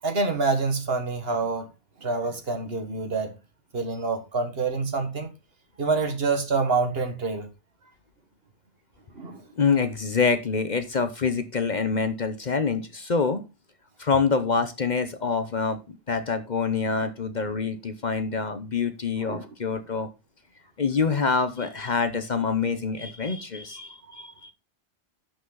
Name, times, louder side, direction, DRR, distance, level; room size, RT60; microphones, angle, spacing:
voice 1, 0.0-1.7 2.0-3.3 3.7-5.3 5.8-7.5 9.2-9.4 19.2-19.5, right 4 dB, 60° right, 1.7 m, -26 dB
voice 2, 9.6-13.4 14.0-20.1 20.8-24.5, left 5 dB, 45° left, 0.9 m, -26 dB
11.0 x 6.1 x 3.9 m
omnidirectional pair, 1.2 m